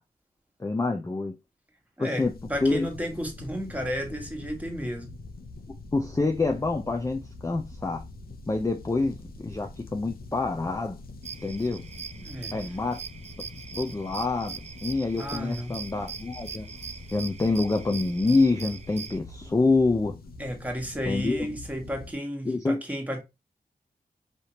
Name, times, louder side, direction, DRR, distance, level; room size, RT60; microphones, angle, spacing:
voice 1, 0.6-1.3 2.0-2.3 2.6-2.9 5.9-8.0 8.5-11.0 11.4-11.8 12.5-13.0 13.8-16.7 17.1-20.1 21.1-21.5 22.5-22.8, left 3 dB, 20° left, 0.5 m, -26 dB
voice 2, 2.0-5.1 12.1-12.6 15.2-15.8 20.4-23.2, equal, 10° right, 1.4 m, -33 dB
sound 1, 2.2-22.1, left 2 dB, 75° left, 0.7 m, -44 dB
sound 2, 11.2-19.2, right 6 dB, 45° right, 0.4 m, -41 dB
5.0 x 2.8 x 2.8 m
wide cardioid pair, 90°, 16 cm